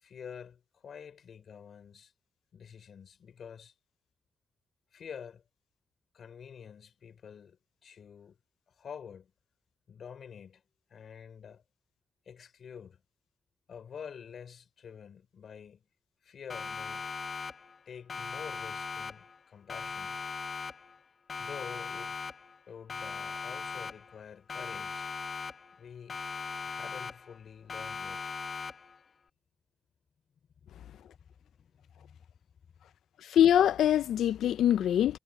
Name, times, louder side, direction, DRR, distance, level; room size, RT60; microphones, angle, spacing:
voice 1, 0.0-2.1 2.5-3.7 4.9-5.4 6.1-8.4 8.7-9.3 9.9-10.6 10.9-11.6 12.2-13.0 13.7-15.9 16.2-17.1 17.9-20.2 21.4-22.2 22.7-25.1 25.7-26.2 26.6-28.3 30.6-32.2, left 7 dB, 55° left, 4.6 m, -48 dB
Siren, 16.5-17.8 18.1-19.4 19.7-21.0 21.3-22.6 22.9-24.2 24.5-25.8 26.1-27.4 27.7-29.0, left 5 dB, 35° left, 1.3 m, -39 dB
voice 2, 33.2-35.2, left 10 dB, 90° left, 0.4 m, -24 dB
wide cardioid pair, 145°, 0 cm